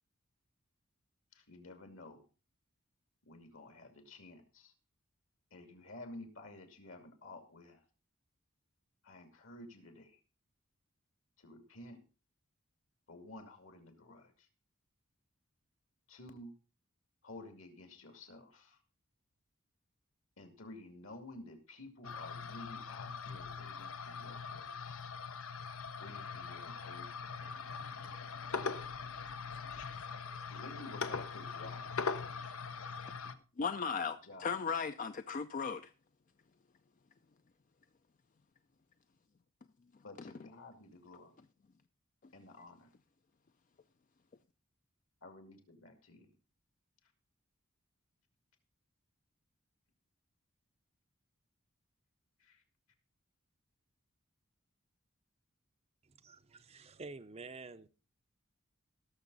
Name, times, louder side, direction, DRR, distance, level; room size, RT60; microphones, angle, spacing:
voice 1, 1.3-2.3 3.2-4.7 5.5-7.8 9.0-10.2 11.4-12.0 13.1-14.5 16.1-16.5 17.2-18.8 20.4-25.2 26.0-27.4 30.4-31.9 34.0-34.6 40.0-41.5 42.3-42.9 45.2-46.3 52.4-52.6, left 2 dB, 75° left, 2.5 m, -52 dB
sound 1, 22.0-33.3, left 5 dB, 90° left, 0.9 m, -42 dB
voice 2, 33.6-35.8, left 5 dB, 40° left, 0.4 m, -36 dB
voice 3, 56.0-57.9, right 3 dB, 30° right, 0.6 m, -49 dB
18.0 x 6.9 x 4.0 m
head